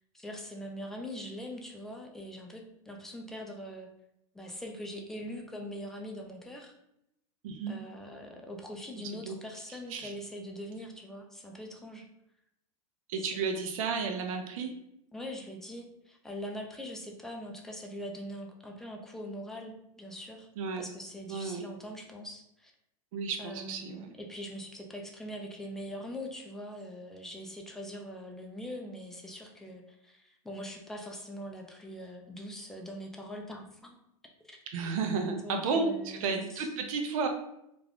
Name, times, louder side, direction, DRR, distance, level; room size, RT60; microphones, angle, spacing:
voice 1, 0.1-3.9 4.3-6.7 7.7-12.1 13.3-13.7 15.1-20.5 20.8-22.7 23.4-34.0 34.4-34.6 35.2-36.2 36.5-36.7, equal, ahead, 1 dB, 0.4 m, -42 dB
voice 2, 7.4-7.8 9.0-9.4 9.9-10.1 13.1-14.7 20.6-20.9 21.3-21.7 23.1-24.1 34.7-37.3, right 5 dB, 65° right, 4 dB, 0.6 m, -32 dB
2.5 x 2.3 x 3.4 m, 0.80 s
hypercardioid pair, 115°, 19 cm